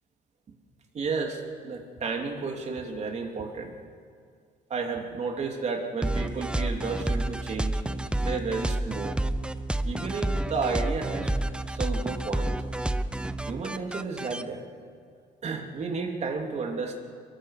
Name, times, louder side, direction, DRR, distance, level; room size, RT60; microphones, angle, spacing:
voice 1, 0.9-3.7 4.7-7.8 8.2-9.2 9.8-11.3 11.7-12.5 13.5-14.6 15.4-17.0, right 4 dB, 40° right, 3 dB, 3.1 m, -32 dB
sound 1, 6.0-14.4, right 1 dB, 5° right, 0.8 m, -29 dB
24.0 x 22.5 x 6.7 m, 2.1 s
cardioid pair, 110°, 17 cm